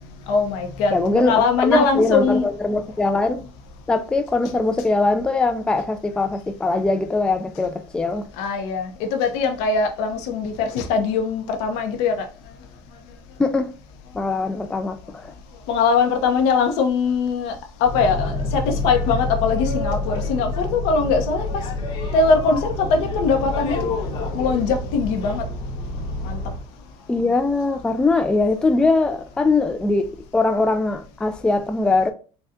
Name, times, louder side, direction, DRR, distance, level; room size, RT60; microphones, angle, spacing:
voice 1, 0.3-2.5 8.4-12.3 15.7-17.5 17.8-21.5 22.1-23.8 24.3-25.4 26.2-26.4, left 4 dB, 75° left, 0.8 m, -21 dB
voice 2, 0.9-3.5 3.9-8.3 13.4-13.7 14.1-15.0 27.1-32.1, left 3 dB, 10° left, 0.3 m, -21 dB
Boat Water vehicle, 17.8-26.6, left 2 dB, 55° left, 1.0 m, -27 dB
4.1 x 2.3 x 2.5 m
supercardioid pair, 115°, 11 cm